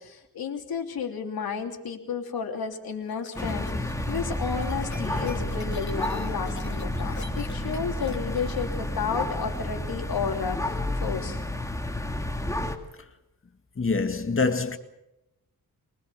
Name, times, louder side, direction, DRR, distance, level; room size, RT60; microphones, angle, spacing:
voice 1, 0.0-11.4, left 6 dB, 80° left, 3.2 m, -32 dB
sound 1, 2.7-9.3, left 4 dB, 50° left, 2.7 m, -45 dB
sound 2, 3.4-12.8, left 1 dB, 10° left, 2.2 m, -30 dB
voice 2, 13.8-14.8, left 4 dB, 35° left, 2.0 m, -25 dB
24.0 x 20.0 x 6.9 m
wide cardioid pair, 110°, 36 cm